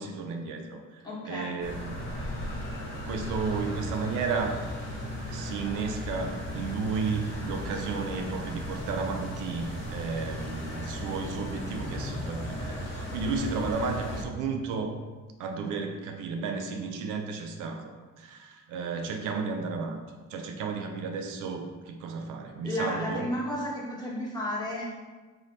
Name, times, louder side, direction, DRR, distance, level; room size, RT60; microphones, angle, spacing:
voice 1, 0.0-2.0 2.3-2.5 3.1-4.6 5.3-15.0 15.4-23.3, right 4 dB, 85° right, 4 dB, 0.5 m, -33 dB
voice 2, 1.0-1.6 22.6-25.0, left 1 dB, 15° left, -7 dB, 1.4 m, -32 dB
sound 1, 1.6-14.2, equal, 40° left, 1.2 m, -36 dB
3.2 x 2.9 x 3.9 m, 1.3 s
cardioid pair, 90°, 30 cm